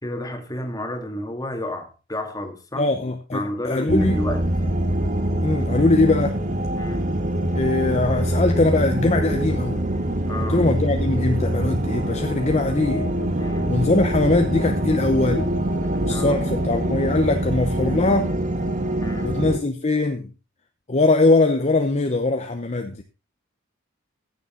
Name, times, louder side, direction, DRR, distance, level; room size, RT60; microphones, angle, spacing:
voice 1, 0.0-2.9 3.3-4.4 6.8-7.1 10.3-10.7 13.4-13.7 16.1-16.4 19.0-19.3, left 1 dB, 20° left, 1.9 m, -30 dB
voice 2, 2.8-4.2 5.4-6.4 7.5-9.8 10.5-13.1 13.7-15.5 16.0-18.4 19.2-20.3 20.9-23.0, left 2 dB, 35° left, 0.8 m, -21 dB
sound 1, 3.9-19.6, right 1 dB, 40° right, 1.5 m, -24 dB
15.0 x 6.9 x 3.8 m
head